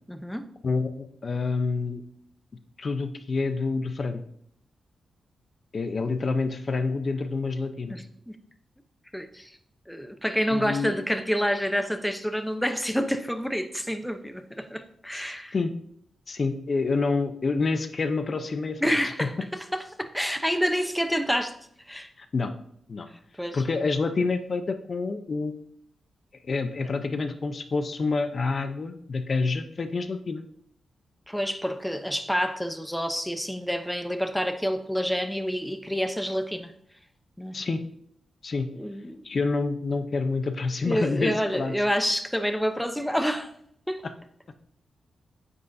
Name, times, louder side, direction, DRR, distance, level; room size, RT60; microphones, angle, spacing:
voice 1, 0.1-0.5 7.9-8.4 9.1-9.6 9.9-15.5 18.8-19.3 19.7-21.5 21.9-22.1 23.4-23.6 31.3-36.7 37.4-37.6 38.8-39.3 40.8-43.5 43.9-44.0, equal, 5° left, 0.7 m, -28 dB
voice 2, 0.6-2.0 2.8-4.2 5.7-8.0 10.5-10.9 15.1-15.7 16.3-18.8 19.2-19.3 22.2-22.5 22.9-23.1 23.5-25.6 26.4-30.4 37.5-37.8 38.4-38.7 39.2-41.7 44.0-44.1, left 4 dB, 45° left, 0.7 m, -28 dB
9.6 x 8.2 x 2.7 m
cardioid pair, 100°, 0 cm